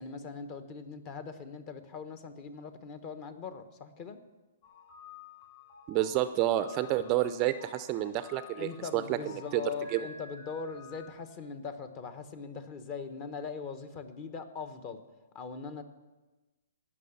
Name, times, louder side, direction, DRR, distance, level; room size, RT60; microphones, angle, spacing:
voice 1, 0.0-4.2 8.0-15.0 15.3-15.8, left 5 dB, 30° left, 9 dB, 1.1 m, -41 dB
sound 1, 4.6-11.1, left 5 dB, 55° left, 5.2 m, -52 dB
voice 2, 5.9-9.6 9.9-10.0, right 13 dB, 30° right, 12 dB, 0.5 m, -29 dB
17.5 x 6.1 x 7.0 m, 1.2 s
hypercardioid pair, 150°, 0 cm